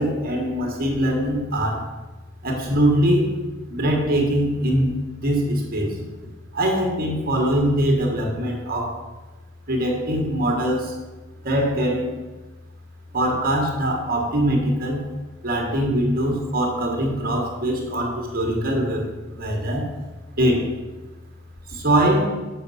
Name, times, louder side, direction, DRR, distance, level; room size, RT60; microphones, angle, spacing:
voice 1, 0.0-1.8 2.4-3.3 3.7-6.0 6.5-9.0 9.7-10.9 11.4-12.1 13.1-15.0 15.4-19.9 20.4-20.7 21.7-22.3, right 1 dB, 45° right, 1 dB, 1.5 m, -22 dB
7.0 x 5.3 x 5.5 m, 1.2 s
head